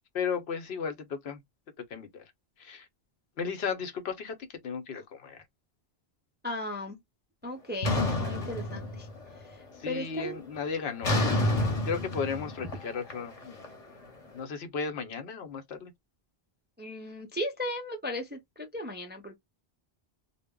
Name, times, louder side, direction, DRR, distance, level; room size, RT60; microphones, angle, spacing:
voice 1, 0.1-1.4 1.9-2.2 2.6-2.9 3.4-5.4 8.3-8.4 9.8-11.2 11.9-13.6 14.3-15.9, left 6 dB, 85° left, 0.9 m, -35 dB
voice 2, 6.4-7.0 7.4-9.1 9.4-10.4 16.8-19.4, left 1 dB, 20° right, 0.3 m, -36 dB
sound 1, 7.8-9.4 9.7-10.1 11.0-14.1, left 1 dB, 40° left, 0.8 m, -29 dB
2.1 x 2.0 x 3.5 m
omnidirectional pair, 1.0 m